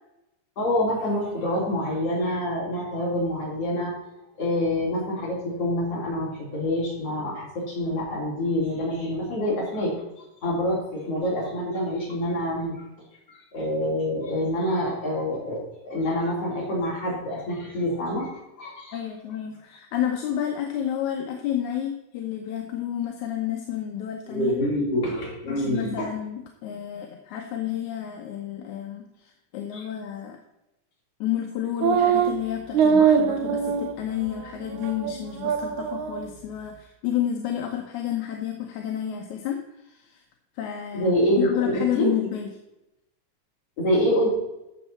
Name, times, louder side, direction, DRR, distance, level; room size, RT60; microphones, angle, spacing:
voice 1, 0.6-3.9 4.4-9.9 10.4-12.8 13.3-18.3 18.6-19.0 24.3-26.1 29.7-29.8 40.9-42.1 43.8-44.3, left 1 dB, 50° left, -5 dB, 4.3 m, -26 dB
voice 2, 18.9-24.6 25.4-30.4 31.2-40.2 40.6-41.1 41.4-42.5, left 10 dB, 80° left, 3 dB, 2.3 m, -30 dB
sound 1, 31.8-32.3 32.7-33.9 34.3-34.4 34.8-35.1 35.4-36.2, right 7 dB, 90° right, 2.4 m, -22 dB
13.5 x 7.2 x 4.2 m, 0.93 s
omnidirectional pair, 3.4 m